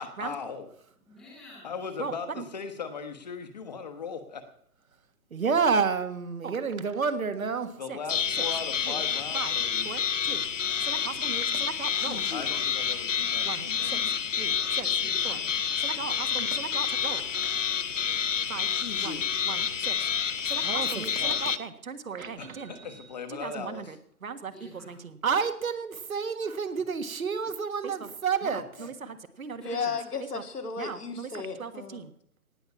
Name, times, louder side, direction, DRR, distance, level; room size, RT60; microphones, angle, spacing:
voice 1, 0.0-0.6 1.6-4.5 7.7-9.9 12.3-14.2 22.4-24.0 28.8-28.9, left 5 dB, 30° left, 8 dB, 1.2 m, -38 dB
voice 2, 1.1-1.8 14.7-15.5 24.5-25.0 29.4-30.0, left 1 dB, ahead, -7 dB, 0.9 m, -52 dB
voice 3, 2.0-2.4 5.3-8.0 8.4-8.5 8.9-9.0 9.3-9.5 9.8-10.4 10.8-12.2 13.4-14.0 14.4-14.9 15.2-15.4 15.8-17.6 18.5-18.7 19.0-20.0 20.4-23.0 23.3-24.0 24.2-24.5 24.9-29.6 30.8-31.3 31.6-32.1, right 5 dB, 65° right, 10 dB, 1.6 m, -32 dB
sound 1, 8.1-21.6, left 7 dB, 55° left, 0.7 m, -29 dB
voice 4, 29.6-32.0, left 5 dB, 90° left, 5 dB, 2.3 m, -34 dB
18.0 x 6.2 x 7.1 m, 0.64 s
hypercardioid pair, 165°, 45 cm